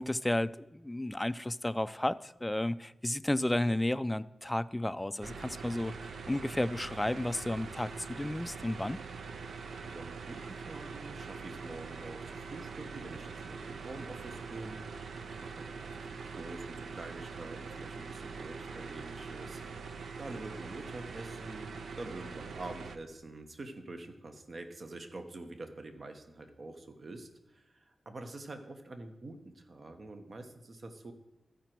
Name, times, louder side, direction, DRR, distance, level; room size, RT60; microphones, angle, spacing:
voice 1, 0.0-9.0, left 1 dB, 15° left, 0.3 m, -32 dB
sound 1, 5.2-23.0, right 5 dB, 85° right, 0.5 m, -43 dB
voice 2, 9.8-15.1 15.4-19.6 20.2-31.1, right 2 dB, 55° right, 1.0 m, -46 dB
14.0 x 5.1 x 4.5 m
cardioid pair, 60°, 0 cm